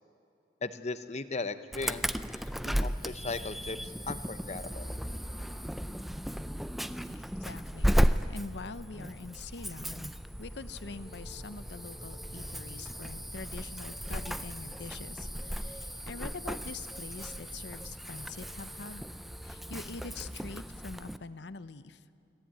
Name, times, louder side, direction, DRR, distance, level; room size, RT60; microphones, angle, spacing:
voice 1, 0.6-2.0 2.6-4.9, left 3 dB, 35° left, 12 dB, 0.8 m, -37 dB
Insect / Alarm, 1.7-21.2, equal, ahead, 0.4 m, -35 dB
voice 2, 7.1-8.0 8.3-10.1 10.4-19.0 19.4-22.0, left 3 dB, 65° left, 14 dB, 0.8 m, -44 dB
25.0 x 16.5 x 8.9 m, 2.7 s
head